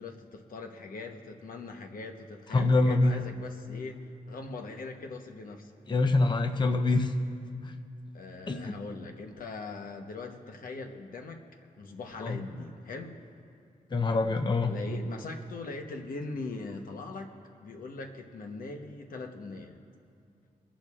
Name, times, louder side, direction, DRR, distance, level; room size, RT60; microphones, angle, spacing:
voice 1, 0.0-5.7 8.1-11.4 11.8-13.2 14.7-17.3 17.6-19.8, left 3 dB, 70° left, 3 dB, 1.0 m, -41 dB
voice 2, 2.5-3.3 5.9-7.1 7.6-7.7 8.5-8.7 12.2-12.4 13.9-14.7, left 2 dB, 30° left, 5 dB, 0.7 m, -25 dB
25.5 x 11.5 x 2.5 m, 2.4 s
cardioid pair, 80°, 15 cm